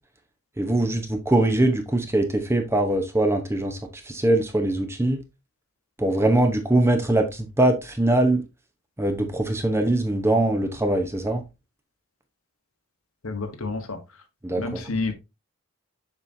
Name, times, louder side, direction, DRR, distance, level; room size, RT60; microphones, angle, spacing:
voice 1, 0.6-3.8 4.1-5.2 6.0-8.4 9.0-11.4 14.4-14.8, right 1 dB, 10° right, 0.8 m, -22 dB
voice 2, 13.2-14.0 14.6-15.1, left 3 dB, 75° left, 1.2 m, -29 dB
7.1 x 5.5 x 2.6 m
head